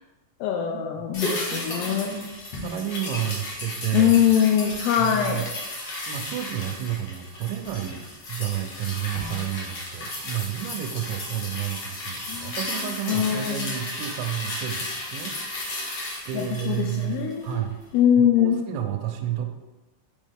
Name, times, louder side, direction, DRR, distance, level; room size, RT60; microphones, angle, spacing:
voice 1, 0.4-2.3 3.9-5.4 12.3-13.7 16.3-17.6 17.9-18.6, left 9 dB, 85° left, 3 dB, 2.4 m, -23 dB
sound 1, 1.1-17.6 17.9-18.0, left 2 dB, 70° left, 1.5 m, -34 dB
voice 2, 1.5-2.2 2.6-4.1 5.0-5.4 6.1-17.7 18.2-19.5, right 11 dB, 85° right, 6 dB, 3.1 m, -31 dB
6.3 x 5.9 x 3.5 m, 1.1 s
omnidirectional pair, 5.2 m